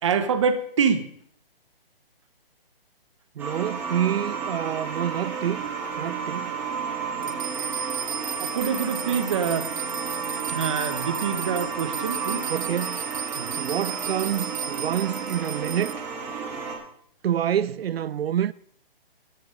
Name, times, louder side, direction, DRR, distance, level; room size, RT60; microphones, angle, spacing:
voice 1, 0.0-1.1 7.2-7.3 8.4-9.7 10.5-12.5 13.4-13.5, right 6 dB, 30° right, 1.0 m, -25 dB
sound 1, 3.4-16.7, right 5 dB, 5° right, 1.8 m, -32 dB
voice 2, 3.4-5.6 6.0-6.5 12.5-13.0 13.6-16.0 17.2-18.5, right 10 dB, 80° right, 0.5 m, -27 dB
sound 2, 7.2-15.9, right 8 dB, 55° right, 1.1 m, -35 dB
13.5 x 9.7 x 5.3 m
hypercardioid pair, 170°, 30 cm